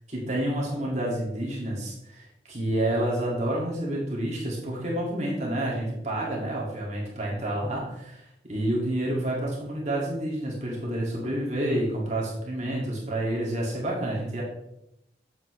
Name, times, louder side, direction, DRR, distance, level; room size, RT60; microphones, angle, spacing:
voice 1, 0.1-14.4, right 1 dB, 40° right, -4 dB, 2.2 m, -29 dB
8.2 x 7.0 x 3.2 m, 0.83 s
head